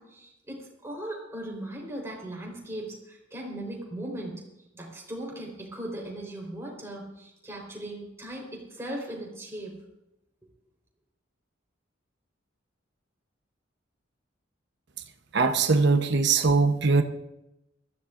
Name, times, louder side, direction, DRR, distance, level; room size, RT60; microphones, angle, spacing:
voice 1, 0.0-4.4 4.7-9.8, right 1 dB, 15° right, 4.2 m, -38 dB
voice 2, 15.3-17.0, right 4 dB, 60° right, 1.0 m, -21 dB
22.0 x 14.5 x 2.6 m
head